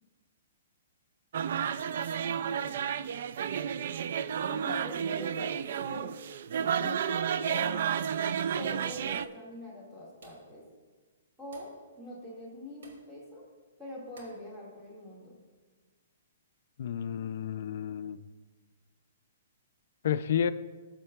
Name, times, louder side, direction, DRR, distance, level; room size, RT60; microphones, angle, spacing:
sound 1, 1.3-9.3, right 8 dB, 60° right, 0.3 m, -31 dB
voice 1, 2.2-2.9 4.5-6.1 6.7-7.8 8.5-10.6 11.4-13.4 13.8-15.3, left 1 dB, 10° right, -7 dB, 1.9 m, -44 dB
sound 2, 8.8-9.2 10.2-10.6 11.5-11.8 12.8-13.1 14.2-14.5, right 2 dB, 75° right, 2.1 m, -54 dB
voice 2, 16.8-18.2 20.0-20.5, left 8 dB, 60° left, 13 dB, 0.3 m, -30 dB
15.5 x 7.4 x 2.3 m, 1.4 s
hypercardioid pair, 160°, 0 cm